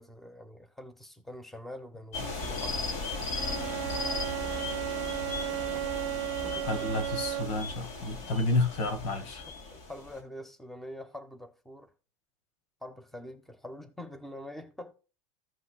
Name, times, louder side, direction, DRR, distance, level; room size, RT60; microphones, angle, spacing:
voice 1, 0.0-3.1 5.7-5.9 6.4-6.9 9.7-11.9 12.8-14.9, left 1 dB, ahead, 1.2 m, -45 dB
sound 1, 2.1-10.2, left 3 dB, 50° left, 3.5 m, -37 dB
Bowed string instrument, 3.3-7.7, right 16 dB, 65° right, 0.6 m, -35 dB
voice 2, 6.7-9.4, left 2 dB, 75° left, 2.0 m, -30 dB
15.0 x 5.7 x 2.4 m
supercardioid pair, 110°, 16 cm